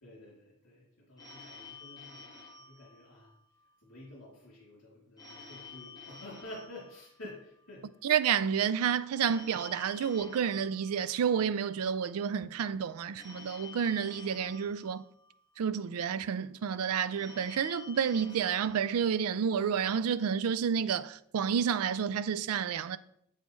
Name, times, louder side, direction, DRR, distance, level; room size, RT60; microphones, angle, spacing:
voice 1, 0.0-3.3 3.8-7.8, left 1 dB, 65° left, 2.9 m, -50 dB
Telephone, 1.2-3.7 5.2-7.7 9.2-11.7 13.2-15.6 17.2-19.6, left 4 dB, 20° left, 1.7 m, -51 dB
voice 2, 8.0-15.0 15.6-23.0, right 7 dB, 75° right, 0.4 m, -30 dB
8.0 x 7.4 x 3.1 m
head